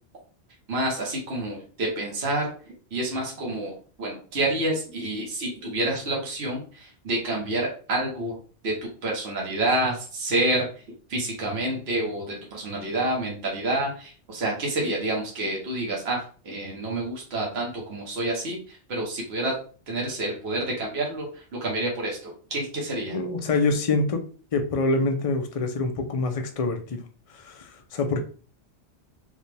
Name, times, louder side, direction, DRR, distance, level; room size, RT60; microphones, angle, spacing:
voice 1, 0.7-2.5 2.9-8.3 8.6-10.6 11.1-19.5 19.9-23.2, right 1 dB, 65° right, -2 dB, 1.4 m, -28 dB
voice 2, 23.1-24.2 24.5-27.0 27.3-28.2, left 3 dB, 40° left, 5 dB, 0.6 m, -25 dB
5.1 x 2.4 x 3.3 m, 0.40 s
omnidirectional pair, 1.2 m